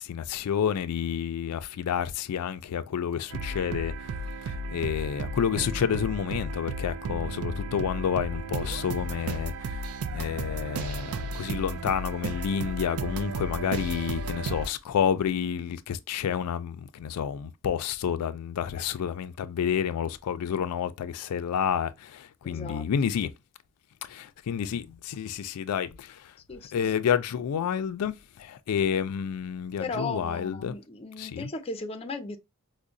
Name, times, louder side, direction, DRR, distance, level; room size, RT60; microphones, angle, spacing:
voice 1, 0.0-9.8 10.1-23.3 24.0-26.3 26.7-30.7 31.2-31.5, left 8 dB, 90° left, 0.4 m, -29 dB
sound 1, 3.3-14.7, right 2 dB, 75° right, 0.4 m, -34 dB
voice 2, 22.4-22.8 26.5-26.7 29.8-32.4, left 3 dB, 25° left, 0.5 m, -36 dB
4.7 x 2.1 x 2.5 m
head